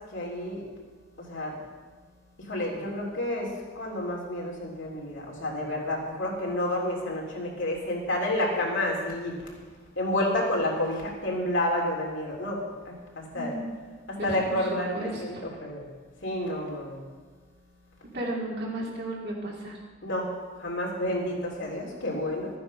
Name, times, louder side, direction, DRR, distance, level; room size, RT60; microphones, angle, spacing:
voice 1, 0.1-0.6 1.2-1.6 2.5-9.4 9.9-13.5 14.1-15.9 16.2-17.0 20.0-20.3 20.6-22.5, left 1 dB, 65° left, -2 dB, 3.4 m, -30 dB
voice 2, 14.2-15.4 18.1-19.8, right 1 dB, 60° right, -3 dB, 3.2 m, -34 dB
14.0 x 9.4 x 5.5 m, 1.4 s
head